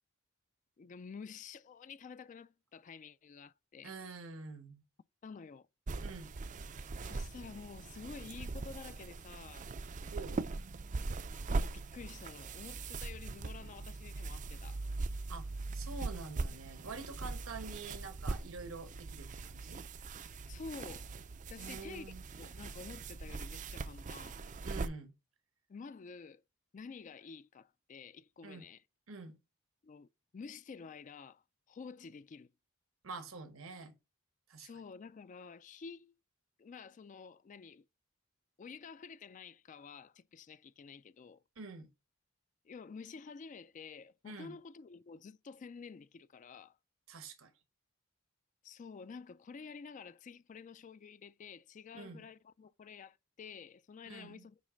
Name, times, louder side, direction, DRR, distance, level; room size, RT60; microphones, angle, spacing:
voice 1, 0.8-3.9 5.2-5.7 7.0-9.7 11.5-14.8 20.5-21.1 21.5-24.4 25.7-26.4 26.7-28.8 29.8-32.5 34.6-36.1 36.6-37.8 38.6-41.4 42.6-46.8 48.6-54.6, left 5 dB, 40° left, 0.3 m, -50 dB
voice 2, 3.8-4.8 6.0-6.3 10.1-10.4 15.3-15.5 15.7-19.8 21.6-22.2 24.6-25.1 28.4-28.7 29.1-29.4 33.0-33.9 34.5-34.7 41.6-41.9 44.2-44.6 47.1-47.5 51.9-52.3 54.1-54.5, right 4 dB, 80° right, 1.1 m, -47 dB
sound 1, 5.9-24.9, right 3 dB, 40° right, 0.4 m, -41 dB
9.3 x 3.2 x 5.0 m
head